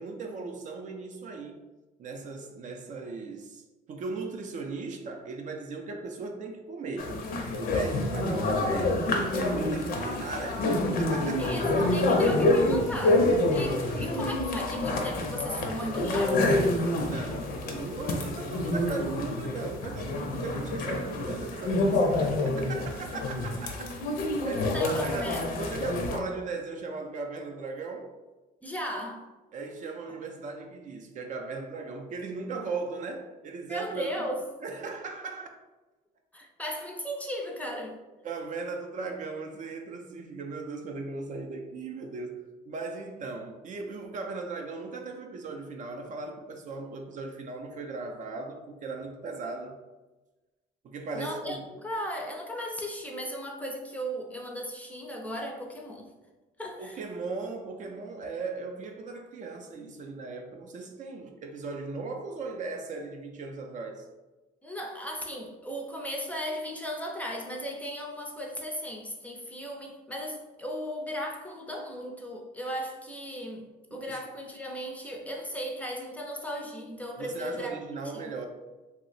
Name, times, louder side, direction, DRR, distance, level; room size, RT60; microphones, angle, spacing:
voice 1, 0.0-1.6 2.0-11.9 13.8-14.3 17.0-23.9 24.4-28.1 29.5-34.3 34.6-35.5 38.2-42.4 42.7-49.8 50.8-51.7 56.8-64.1 73.9-74.2 77.2-78.5, right 3 dB, 50° right, 0.4 m, -38 dB
sound 1, 7.0-26.2, left 2 dB, 60° left, 0.5 m, -27 dB
voice 2, 11.4-16.6 24.7-25.7 28.6-29.3 30.1-30.2 33.7-34.4 36.3-38.0 51.1-56.1 56.6-57.0 64.6-73.6 73.9-77.8 78.1-78.2, equal, 10° left, 0.4 m, -36 dB
2.7 x 2.0 x 4.0 m
cardioid pair, 110°, 17 cm